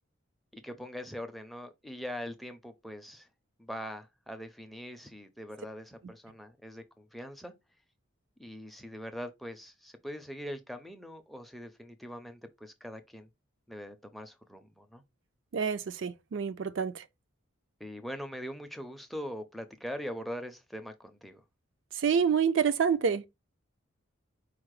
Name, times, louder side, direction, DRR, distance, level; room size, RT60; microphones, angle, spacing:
voice 1, 0.5-3.3 3.6-7.5 8.4-13.3 13.7-15.0 17.8-21.4, equal, ahead, 0.4 m, -42 dB
voice 2, 15.5-17.0 22.0-23.3, right 6 dB, 65° right, 0.4 m, -27 dB
4.7 x 2.0 x 4.7 m
head